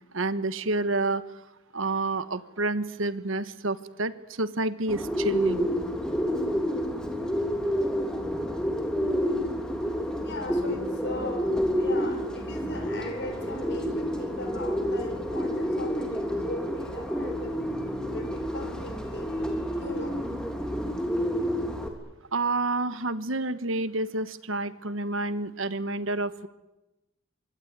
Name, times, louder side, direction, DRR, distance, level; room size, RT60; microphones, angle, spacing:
voice 1, 0.1-1.2 1.7-5.7 22.3-26.5, right 2 dB, 70° right, 14 dB, 1.3 m, -29 dB
Bird, 4.9-21.9, equal, 5° left, 3.1 m, -29 dB
voice 2, 10.2-11.5 11.7-17.6 18.1-20.2, left 1 dB, 55° left, 5 dB, 5.5 m, -39 dB
25.0 x 24.0 x 9.6 m, 1.0 s
head